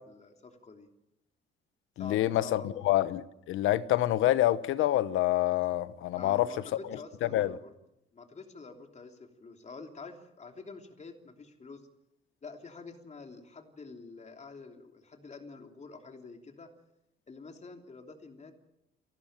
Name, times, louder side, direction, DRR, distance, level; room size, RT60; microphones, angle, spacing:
voice 1, 0.1-0.9 2.0-2.8 6.1-7.7 8.1-11.9 12.4-16.7 17.3-18.5, left 4 dB, 35° left, 3.1 m, -47 dB
voice 2, 2.0-6.5 7.2-7.5, left 14 dB, 90° left, 1.1 m, -27 dB
30.0 x 12.0 x 8.9 m
cardioid pair, 90°, 20 cm